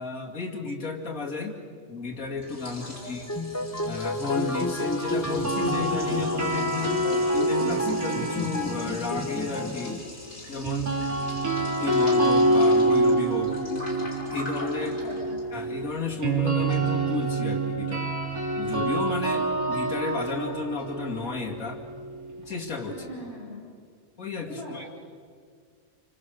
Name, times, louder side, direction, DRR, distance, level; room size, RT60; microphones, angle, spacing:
voice 1, 0.0-1.6 1.9-3.3 3.8-10.0 10.5-11.0 11.8-13.6 14.3-15.0 15.5-18.2 18.6-21.8 22.5-22.9 24.2-24.9, left 4 dB, 75° left, -2 dB, 2.9 m, -33 dB
Liquid, 2.0-17.2, left 1 dB, 50° left, 5.4 m, -44 dB
voice 2, 2.8-3.2 14.8-15.4 22.9-23.6 24.5-24.9, equal, 45° right, -5 dB, 5.2 m, -41 dB
sound 1, 3.3-10.0, left 1 dB, 15° left, 0.7 m, -31 dB
sound 2, 5.2-9.4 10.6-22.5, right 2 dB, 85° right, 3.6 m, -26 dB
27.0 x 25.0 x 6.5 m, 2.1 s
omnidirectional pair, 1.5 m